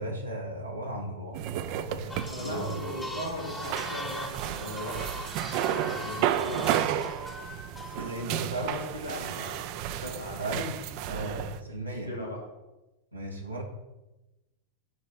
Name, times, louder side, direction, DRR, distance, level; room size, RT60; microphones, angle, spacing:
voice 1, 0.0-1.4 1.8-3.0 6.2-6.5 7.9-8.8 10.4-10.8 11.0-12.1 13.1-13.6, right 1 dB, 85° right, -1 dB, 1.2 m, -36 dB
sound 1, 1.3-11.6, right 11 dB, 45° right, 0.5 m, -33 dB
sound 2, 2.1-8.4, left 2 dB, 10° left, 1.0 m, -41 dB
voice 2, 2.3-5.1 5.7-6.7 8.6-10.4 11.1-11.3 11.8-12.4, equal, 85° left, -4 dB, 2.2 m, -38 dB
8.6 x 4.0 x 6.4 m, 1.0 s
figure-of-eight pair, 90°, 0 cm